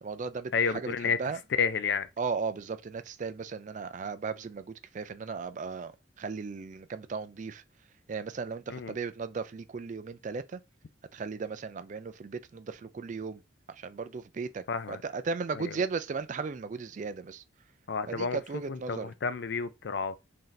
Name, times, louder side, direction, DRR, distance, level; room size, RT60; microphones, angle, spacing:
voice 1, 0.0-0.9 1.2-1.4 2.2-5.9 6.2-7.6 8.1-10.6 11.1-13.4 13.7-17.4 18.1-19.1, right 5 dB, 40° right, 0.3 m, -36 dB
voice 2, 0.5-1.2 1.6-2.1 8.7-8.9 14.7-15.0 15.6-15.8 17.9-20.2, left 5 dB, 60° left, 0.4 m, -31 dB
3.1 x 2.7 x 3.9 m
head